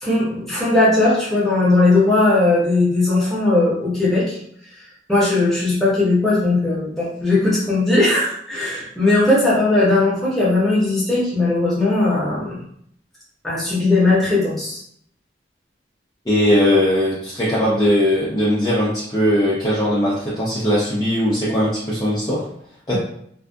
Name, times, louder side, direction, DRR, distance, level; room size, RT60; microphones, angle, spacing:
voice 1, 0.0-4.4 5.1-12.6 13.4-14.8, left 2 dB, ahead, -9 dB, 0.9 m, -18 dB
voice 2, 16.2-22.4 22.9-23.0, equal, 20° left, -9 dB, 0.5 m, -19 dB
2.5 x 2.3 x 2.3 m, 0.68 s
head